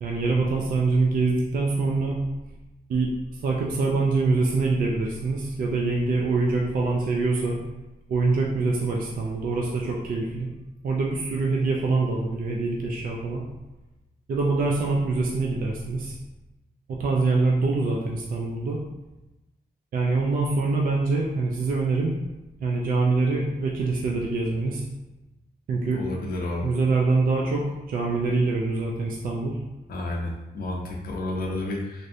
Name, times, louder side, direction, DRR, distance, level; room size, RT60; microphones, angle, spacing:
voice 1, 0.0-2.2 2.9-7.6 8.1-10.5 10.8-13.4 14.3-16.2 16.9-18.8 19.9-22.1 22.6-24.8 25.7-26.0 26.6-29.6, right 3 dB, 60° right, -1 dB, 0.4 m, -24 dB
voice 2, 25.9-26.7 29.9-32.1, left 1 dB, 70° left, -1 dB, 0.6 m, -31 dB
3.2 x 2.6 x 2.6 m, 1.0 s
wide cardioid pair, 165°, 16 cm